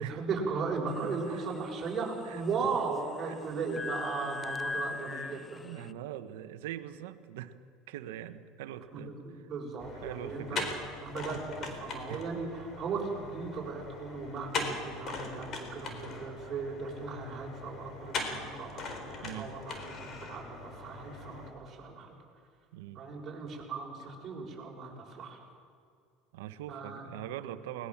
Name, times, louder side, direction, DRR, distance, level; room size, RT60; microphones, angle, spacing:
voice 1, 0.1-5.6 8.9-10.6 11.0-22.2 22.9-25.4 26.7-27.1, right 4 dB, 35° right, -1 dB, 6.5 m, -37 dB
sound 1, 0.9-5.9, left 4 dB, 20° left, 0.5 m, -41 dB
voice 2, 1.0-1.5 2.2-2.4 3.3-3.4 4.4-4.5 4.9-7.5 7.9-9.1 9.9-10.7 11.3-11.4 12.1-12.2 19.2-19.5 22.7-23.0 26.3-27.9, right 12 dB, 85° right, 10 dB, 1.2 m, -42 dB
sound 2, 9.8-21.5, left 3 dB, 45° left, 4.2 m, -40 dB
21.0 x 20.0 x 7.3 m, 2.2 s
supercardioid pair, 110°, 0 cm